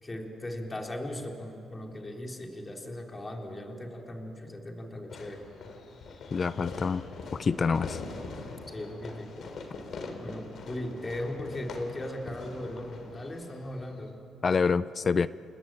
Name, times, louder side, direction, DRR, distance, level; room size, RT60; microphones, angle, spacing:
voice 1, 0.0-5.5 8.7-9.5 10.2-14.2, left 1 dB, 25° left, 1 dB, 3.7 m, -38 dB
Fireworks, 5.1-14.1, left 4 dB, 60° left, 3.5 m, -42 dB
voice 2, 6.3-7.0 7.3-8.0 14.4-15.3, left 5 dB, 40° left, 16 dB, 0.6 m, -26 dB
30.0 x 20.0 x 9.0 m, 2.8 s
cardioid pair, 90°, 0 cm